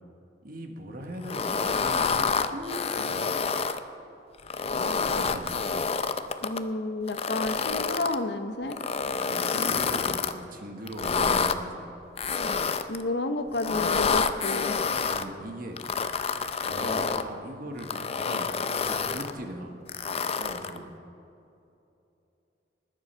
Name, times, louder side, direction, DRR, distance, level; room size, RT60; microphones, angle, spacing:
voice 1, 0.4-3.1 4.6-5.7 9.1-11.9 14.8-15.8 16.6-18.5 18.8-19.8 20.4-20.9, right 1 dB, 50° right, 3 dB, 1.5 m, -40 dB
sound 1, 1.2-3.8 4.4-6.6 7.1-8.2 8.7-10.3 10.9-11.6 12.2-13.0 13.5-15.2 15.8-17.3 17.8-19.3 19.9-20.8, left 5 dB, 35° left, 0.5 m, -28 dB
voice 2, 6.4-8.8 12.9-14.8, left 2 dB, 65° left, 9 dB, 0.8 m, -31 dB
20.0 x 7.7 x 5.6 m, 2.7 s
head